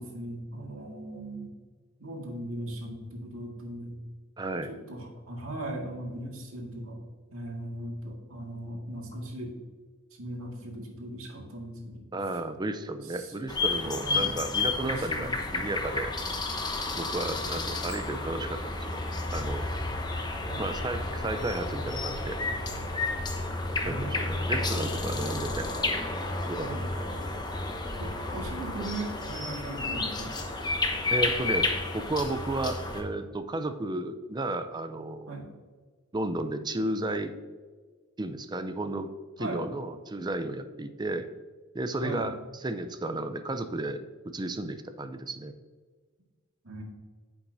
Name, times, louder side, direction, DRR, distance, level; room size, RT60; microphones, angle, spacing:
voice 1, 0.0-1.5 2.0-4.0 4.7-7.0 7.3-9.6 10.2-12.0 13.1-13.3 13.8-14.3 14.8-15.7 17.2-18.0 20.5-20.7 23.8-24.3 26.6-26.8 28.0-30.3 35.3-35.5 39.4-39.6 41.9-42.3 46.6-46.8, right 1 dB, 80° right, 0 dB, 1.9 m, -38 dB
voice 2, 4.4-4.7 12.1-16.1 17.0-19.0 19.3-19.7 20.6-22.4 23.8-25.7 26.5-27.1 31.1-35.4 36.1-37.3 38.2-39.1 39.4-41.3 41.7-45.5, right 2 dB, 20° right, 9 dB, 0.5 m, -33 dB
sound 1, 13.5-33.0, left 2 dB, 20° left, 0.9 m, -31 dB
9.3 x 7.2 x 2.7 m, 1.4 s
head